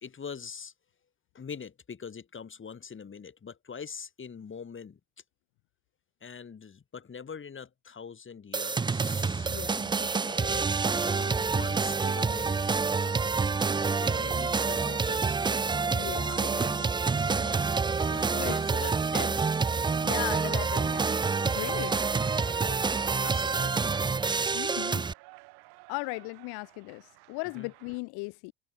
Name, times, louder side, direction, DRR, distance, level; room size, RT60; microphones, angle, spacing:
voice 1, 0.0-0.7 1.3-5.0 6.2-9.5 10.0-12.6 13.9-15.6 15.9-17.7 18.1-19.5 21.5-22.1 22.4-23.9 27.6-27.7, left 6 dB, 30° left, 3.1 m, -43 dB
sound 1, 8.5-25.1, right 4 dB, 15° right, 0.4 m, -28 dB
voice 2, 9.5-9.9 15.9-16.4 18.3-18.6 20.0-21.2 21.4-21.9 24.5-25.1 25.9-28.5, left 28 dB, 80° left, 1.1 m, -37 dB
Cheering, 13.2-28.0, right 26 dB, 80° right, 5.4 m, -51 dB
supercardioid pair, 80°, 38 cm